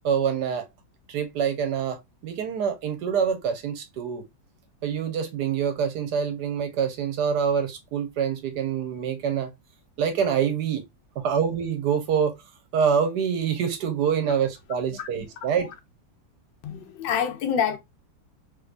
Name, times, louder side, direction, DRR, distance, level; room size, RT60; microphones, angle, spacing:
voice 1, 0.0-0.7 1.1-4.2 4.8-9.5 10.0-10.8 11.2-12.4 12.7-15.7, right 7 dB, 65° right, 1.1 m, -26 dB
voice 2, 16.6-17.8, left 8 dB, 70° left, 1.4 m, -27 dB
3.6 x 2.9 x 2.4 m
omnidirectional pair, 2.1 m